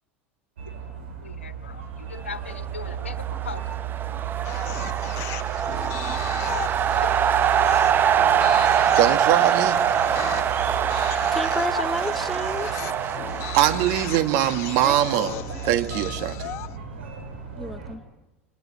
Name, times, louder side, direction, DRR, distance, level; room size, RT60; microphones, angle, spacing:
sound 1, 0.6-18.0, right 8 dB, 70° right, 6.4 m, -35 dB
voice 1, 1.2-3.8 6.9-8.4 11.7-11.8, left 5 dB, 80° left, 1.3 m, -39 dB
sound 2, 2.9-14.8, right 9 dB, 30° right, 0.8 m, -24 dB
sound 3, 4.4-16.8, left 14 dB, 45° left, 0.9 m, -37 dB
voice 2, 8.9-9.8 13.5-15.4 15.6-16.5, right 12 dB, 50° right, 1.6 m, -22 dB
voice 3, 11.3-12.8 14.8-15.0 15.4-15.5 17.6-18.0, left 1 dB, ahead, 1.1 m, -31 dB
26.5 x 25.0 x 7.7 m
figure-of-eight pair, 80°, 7 cm